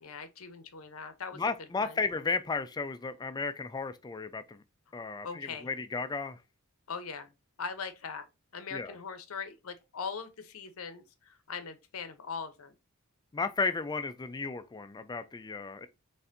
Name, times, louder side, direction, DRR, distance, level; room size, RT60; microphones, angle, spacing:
voice 1, 0.0-1.4 1.8-2.0 5.2-5.7 6.9-7.3 7.6-8.3 8.5-12.7, left 5 dB, 70° left, 0.7 m, -40 dB
voice 2, 1.4-4.6 4.9-6.4 8.7-8.9 13.3-15.9, left 4 dB, 20° left, 0.3 m, -34 dB
4.2 x 3.3 x 2.5 m
head